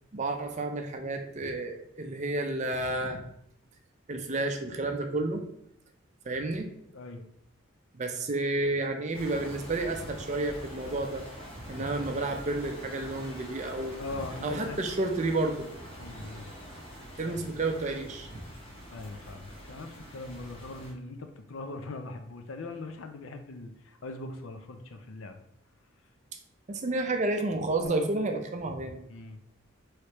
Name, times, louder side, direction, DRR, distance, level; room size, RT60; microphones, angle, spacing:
voice 1, 0.1-3.2 4.1-5.5 6.3-6.7 7.9-11.2 11.7-14.0 14.4-15.7 17.2-18.4 26.7-29.0, right 2 dB, 35° right, 5 dB, 0.4 m, -31 dB
voice 2, 6.9-7.3 11.8-11.9 14.0-14.8 16.0-16.5 17.2-17.4 18.9-25.4 27.8-28.1 29.1-29.4, left 2 dB, 70° left, 6 dB, 0.5 m, -41 dB
sound 1, 9.1-20.9, equal, 25° left, 0.9 m, -45 dB
4.8 x 3.2 x 2.9 m, 0.74 s
head